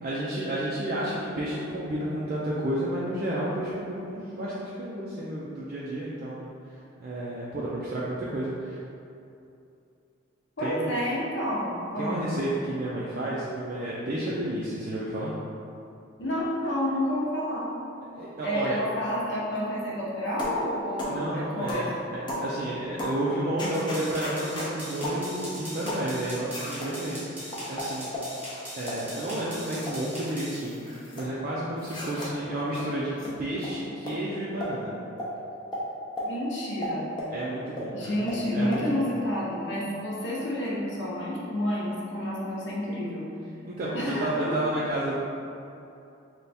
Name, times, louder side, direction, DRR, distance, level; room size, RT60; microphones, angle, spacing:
voice 1, 0.0-6.5 7.0-8.8 10.6-10.9 12.0-15.3 18.1-18.8 21.1-28.1 28.7-34.9 37.3-38.3 38.5-39.1 43.7-45.2, right 1 dB, 40° right, -7 dB, 0.4 m, -31 dB
voice 2, 10.6-12.3 16.2-17.7 18.4-21.9 36.2-37.1 37.9-43.3 43.9-44.6, equal, 55° left, -5 dB, 0.7 m, -30 dB
sound 1, 20.4-20.6 21.0-21.2 21.7-21.9 22.3-22.5 23.0-23.2 23.6-24.7 25.0-25.2 25.9-26.1 26.5-26.9 27.5-28.3 28.8-29.0 29.5-30.0 30.3-31.3 31.8-32.3 32.7-32.9 33.2-33.3 33.6-33.7 34.1-34.2 34.6-34.7 35.2-35.3 35.7-35.8 36.2-36.3 36.8-37.3 37.8-37.9 38.3-38.4 38.7-38.8, left 1 dB, 20° left, 0.5 m, -34 dB
sound 2, 23.7-30.6, equal, 10° right, 0.8 m, -40 dB
3.3 x 2.2 x 4.1 m, 2.7 s
head